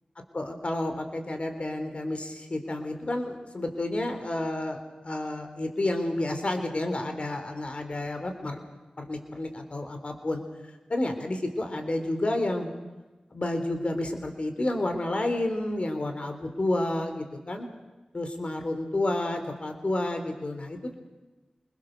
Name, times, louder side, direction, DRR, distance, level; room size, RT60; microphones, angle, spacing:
voice 1, 0.3-8.6 9.0-10.4 10.9-12.7 13.3-17.7 18.1-21.0, left 1 dB, 50° left, 6 dB, 3.8 m, -30 dB
26.5 x 21.0 x 6.8 m, 1.2 s
cardioid pair, 45°, 3 cm